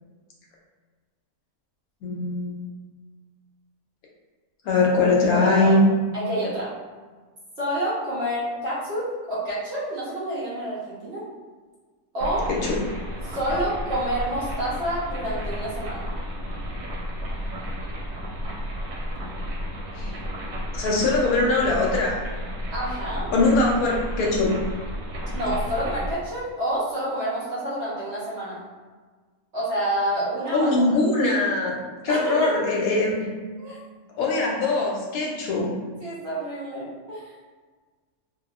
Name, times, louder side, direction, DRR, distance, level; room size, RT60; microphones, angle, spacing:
voice 1, 2.0-2.6 4.6-5.8 12.5-12.8 19.9-20.2 20.7-22.2 23.3-24.6 30.5-33.3 34.1-35.7, left 3 dB, 75° left, -2 dB, 1.0 m, -22 dB
voice 2, 5.3-5.7 6.1-6.7 7.6-11.2 12.1-12.5 13.2-16.0 22.7-23.3 25.3-28.6 29.5-30.7 32.1-32.5 33.6-33.8 36.0-37.3, right 1 dB, 50° right, -10 dB, 0.9 m, -28 dB
sound 1, 12.2-26.1, equal, 90° right, 1.1 m, -32 dB
2.7 x 2.4 x 2.3 m, 1.4 s
omnidirectional pair, 1.6 m